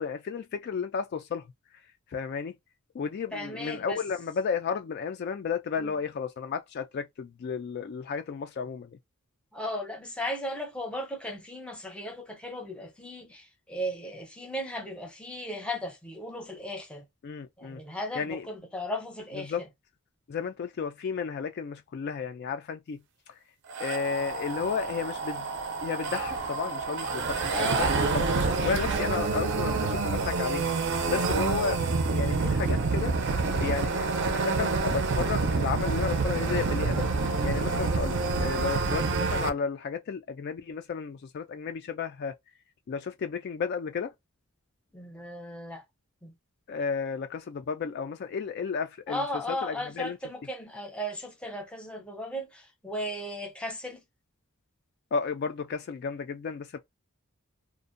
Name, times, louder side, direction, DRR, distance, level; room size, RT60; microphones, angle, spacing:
voice 1, 0.0-1.4 2.1-2.5 2.9-8.9 17.2-17.8 18.1-18.5 19.4-19.6 20.3-23.0 23.8-25.5 25.8-30.7 31.1-31.8 32.1-33.1 33.6-37.1 37.4-42.3 42.9-44.1 46.7-50.2 55.1-56.8, left 6 dB, 50° left, 0.3 m, -33 dB
voice 2, 3.3-4.0 5.8-5.9 9.5-17.0 17.6-19.5 27.5-28.0 44.9-45.8 46.2-46.3 49.1-54.0, equal, 5° left, 0.6 m, -36 dB
sound 1, 23.7-39.5, right 4 dB, 55° right, 0.5 m, -28 dB
2.5 x 2.1 x 2.5 m
head